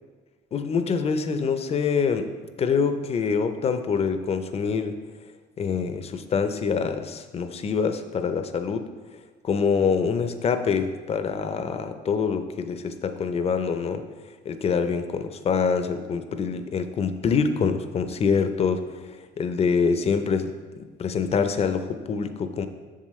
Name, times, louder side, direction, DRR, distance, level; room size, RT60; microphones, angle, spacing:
voice 1, 0.5-2.3 2.6-5.0 5.6-8.9 9.4-14.0 14.4-18.8 19.4-20.5 20.8-22.7, left 5 dB, 35° left, 9 dB, 0.6 m, -25 dB
7.4 x 7.2 x 3.2 m, 1.4 s
cardioid pair, 110°, 17 cm